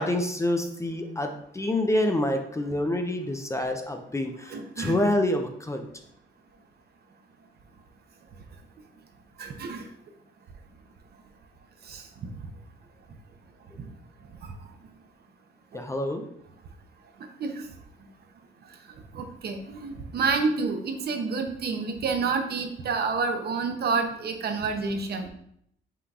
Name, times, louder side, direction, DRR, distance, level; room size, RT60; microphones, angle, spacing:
voice 1, 0.0-5.9 15.7-16.3, left 1 dB, 15° left, 5 dB, 0.5 m, -27 dB
voice 2, 4.5-5.1 9.4-9.9 11.8-12.0 14.4-14.5 17.4-17.6 19.1-25.3, right 4 dB, 55° right, 5 dB, 0.7 m, -29 dB
5.7 x 3.8 x 2.4 m, 0.70 s
cardioid pair, 90°, 20 cm